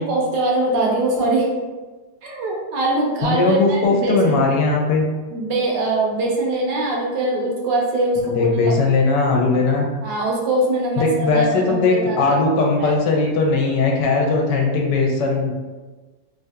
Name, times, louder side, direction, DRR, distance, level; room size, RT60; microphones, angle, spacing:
voice 1, 0.0-1.5 2.2-4.5 5.3-8.7 10.0-12.4 12.8-12.9, right 2 dB, 85° right, -2 dB, 1.3 m, -22 dB
voice 2, 3.2-5.0 8.3-9.8 11.0-15.6, left 3 dB, 85° left, 0 dB, 1.2 m, -19 dB
3.3 x 2.3 x 2.7 m, 1.3 s
omnidirectional pair, 1.8 m